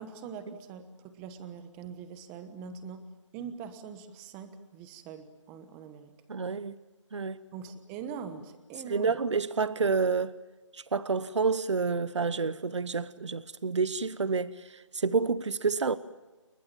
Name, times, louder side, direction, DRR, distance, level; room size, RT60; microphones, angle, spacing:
voice 1, 0.0-6.1 7.5-9.2, right 6 dB, 10° right, 1.2 m, -43 dB
voice 2, 6.3-6.7 7.1-7.4 8.9-10.3 10.7-16.0, right 4 dB, 65° right, 1.1 m, -29 dB
30.0 x 19.5 x 7.4 m
figure-of-eight pair, 170°, 16 cm